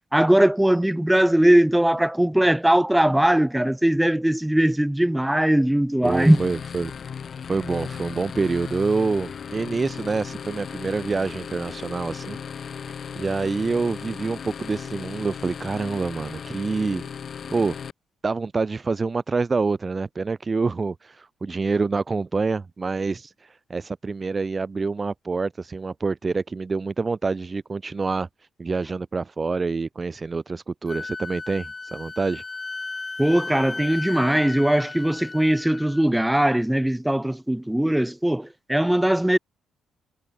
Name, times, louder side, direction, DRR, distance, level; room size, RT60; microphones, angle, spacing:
voice 1, 0.1-6.4 33.2-39.4, right 1 dB, 5° right, 2.8 m, -20 dB
sound 1, 6.0-17.9, left 7 dB, 50° left, 3.2 m, -36 dB
voice 2, 6.0-6.9 7.5-12.4 13.2-17.0 17.5-17.8 18.2-28.3 28.6-32.4, right 4 dB, 30° right, 0.9 m, -26 dB
Wind instrument woodwind instrument, 30.9-36.0, left 3 dB, 25° left, 3.0 m, -35 dB
cardioid pair, 90°, 0 cm